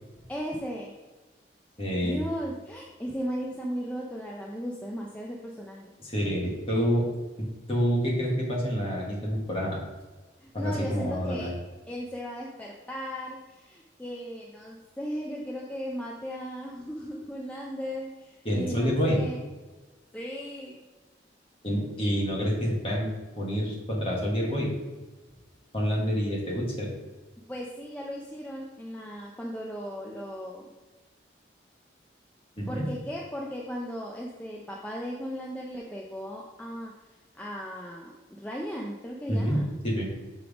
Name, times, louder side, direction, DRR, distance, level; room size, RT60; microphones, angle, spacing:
voice 1, 0.3-0.9 1.9-5.9 10.4-11.5 11.9-19.4 20.1-20.8 27.5-30.6 32.7-36.9 37.4-38.1 38.4-39.7, equal, 10° left, -2 dB, 0.4 m, -36 dB
voice 2, 1.8-2.2 6.0-7.1 7.4-9.8 10.5-11.5 18.4-19.2 21.6-24.7 25.7-26.9 32.6-32.9 39.3-40.1, equal, 30° left, -3 dB, 1.4 m, -28 dB
6.2 x 3.5 x 4.9 m, 1.2 s
head